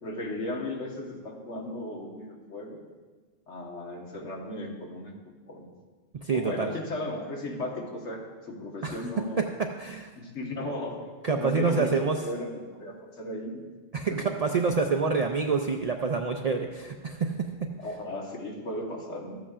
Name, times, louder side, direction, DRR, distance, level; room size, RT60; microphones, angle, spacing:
voice 1, 0.0-2.8 3.5-5.1 5.5-5.7 6.3-9.4 10.1-11.0 11.3-13.6 14.2-14.3 17.8-19.4, left 1 dB, 75° left, 0 dB, 1.6 m, -36 dB
voice 2, 6.2-6.7 8.8-9.0 9.4-10.1 11.2-12.2 13.9-17.5, right 4 dB, 80° right, 3 dB, 0.3 m, -27 dB
13.5 x 8.1 x 2.4 m, 1.4 s
omnidirectional pair, 1.2 m